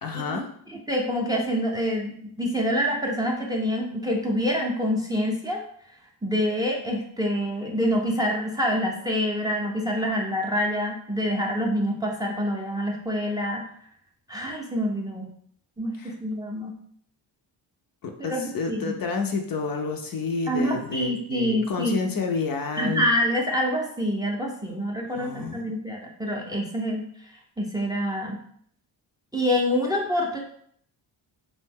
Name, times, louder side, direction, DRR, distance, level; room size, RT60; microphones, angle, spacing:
voice 1, 0.0-0.5 16.0-16.1 18.0-23.1 25.1-25.7, left 4 dB, 45° left, 3 dB, 0.5 m, -29 dB
voice 2, 0.7-5.6 6.2-13.7 14.3-15.3 15.8-16.7 18.2-19.0 20.5-22.0 22.8-27.1 27.6-28.4 29.3-30.4, equal, 10° right, -1 dB, 0.5 m, -26 dB
2.6 x 2.1 x 3.4 m, 0.65 s
cardioid pair, 60°, 48 cm